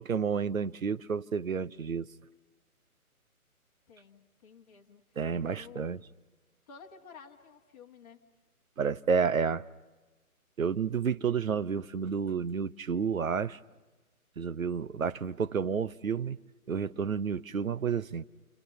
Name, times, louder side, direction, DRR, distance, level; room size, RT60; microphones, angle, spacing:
voice 1, 0.0-2.1 5.2-6.0 8.8-9.6 10.6-13.6 14.4-16.4 16.7-18.2, right 6 dB, 65° right, 0.9 m, -30 dB
voice 2, 3.9-5.0 5.3-6.0 6.7-8.3, left 6 dB, 25° left, 1.7 m, -52 dB
28.0 x 26.5 x 6.8 m
figure-of-eight pair, 145°, 44 cm